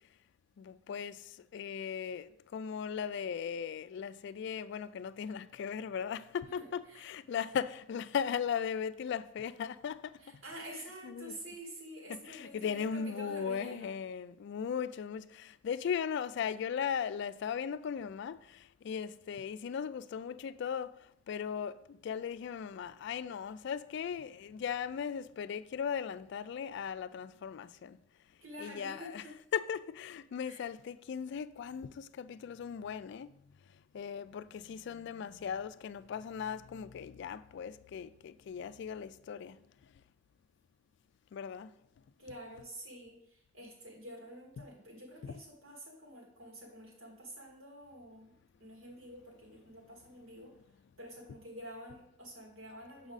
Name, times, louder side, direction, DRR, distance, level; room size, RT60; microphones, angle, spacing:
voice 1, 0.6-10.1 11.0-11.3 12.1-28.0 28.6-29.2 29.5-33.3 33.9-39.6 41.3-41.7 44.6-44.7 45.2-45.4, left 7 dB, 60° left, 0.3 m, -38 dB
voice 2, 6.5-7.1 10.2-14.0 28.4-29.4 30.4-30.6 42.2-48.3 48.6-50.6 51.0-53.1, equal, 85° right, 2.5 m, -48 dB
6.1 x 6.1 x 4.0 m
head